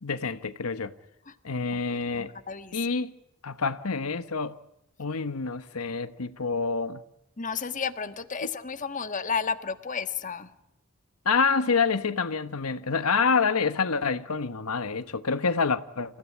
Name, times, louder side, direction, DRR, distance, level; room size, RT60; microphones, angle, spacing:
voice 1, 0.0-0.9 1.4-2.3 2.7-3.1 3.4-4.6 5.0-7.0 11.2-16.2, left 5 dB, 85° left, 1.1 m, -27 dB
voice 2, 2.1-2.8 7.4-10.5, left 6 dB, 35° left, 1.4 m, -32 dB
28.0 x 16.0 x 9.7 m
head